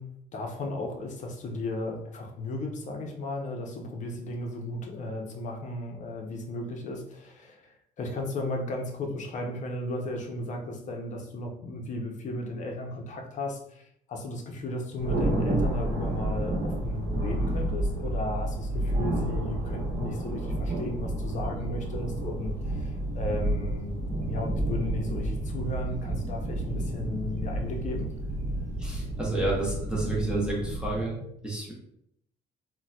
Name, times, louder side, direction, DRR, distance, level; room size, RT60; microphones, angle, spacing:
voice 1, 0.0-24.0 24.3-28.1, left 2 dB, 45° left, 2 dB, 0.6 m, -35 dB
Thunder, 15.0-31.0, right 1 dB, 45° right, 1.0 m, -30 dB
voice 2, 28.8-31.7, right 2 dB, 5° right, -5 dB, 0.8 m, -30 dB
4.0 x 2.2 x 2.3 m, 0.74 s
cardioid pair, 110°, 17 cm